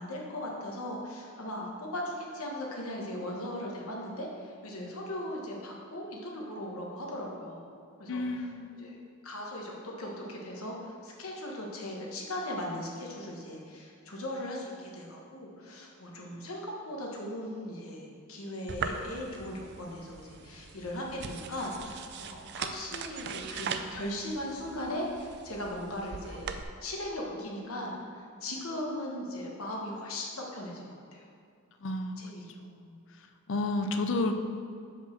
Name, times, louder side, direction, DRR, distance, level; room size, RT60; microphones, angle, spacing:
voice 1, 0.0-7.7 8.0-8.5 8.8-8.9 9.2-26.5 26.8-31.2 32.2-32.4, left 1 dB, 80° left, -1 dB, 1.3 m, -38 dB
voice 2, 8.1-8.9 31.8-32.2 32.6-33.0 33.5-34.3, left 2 dB, 60° left, 7 dB, 0.5 m, -31 dB
sound 1, 18.7-26.6, right 6 dB, 50° right, 0.4 m, -40 dB
5.3 x 4.9 x 6.4 m, 2.4 s
head